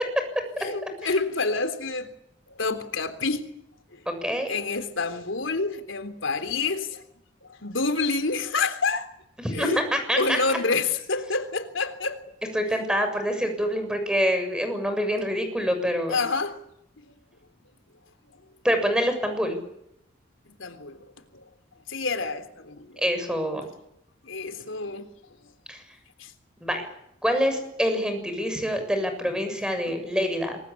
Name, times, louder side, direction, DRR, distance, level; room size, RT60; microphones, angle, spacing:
voice 1, 0.6-2.1 2.5-3.5 3.9-4.0 4.5-7.0 7.4-9.1 9.5-9.8 10.1-12.2 16.1-16.6 20.6-21.0 21.3-21.4 21.9-23.0 24.2-25.1 25.4-25.5 26.2-26.3 29.9-30.0, left 3 dB, 85° left, 3.5 m, -28 dB
voice 2, 4.1-4.5 9.4-10.6 12.5-16.2 18.6-19.6 23.0-23.7 25.7-25.8 26.6-26.9 27.2-30.6, equal, 5° right, 7.2 m, -26 dB
27.0 x 23.5 x 8.6 m
head